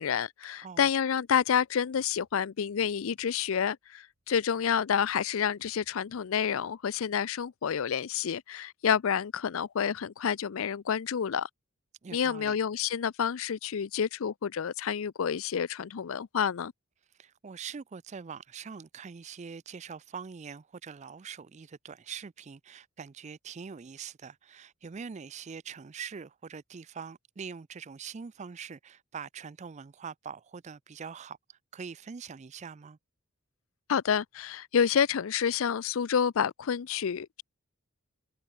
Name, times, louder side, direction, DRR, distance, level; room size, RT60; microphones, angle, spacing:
voice 1, 0.0-11.5 12.1-16.7 33.9-37.4, left 7 dB, 70° left, 0.5 m, -29 dB
sound 1, 1.3-4.9 5.1-6.8, right 1 dB, 85° right, 5.2 m, -72 dB
voice 2, 12.0-12.6 17.2-33.0, right 6 dB, 30° right, 0.4 m, -43 dB
head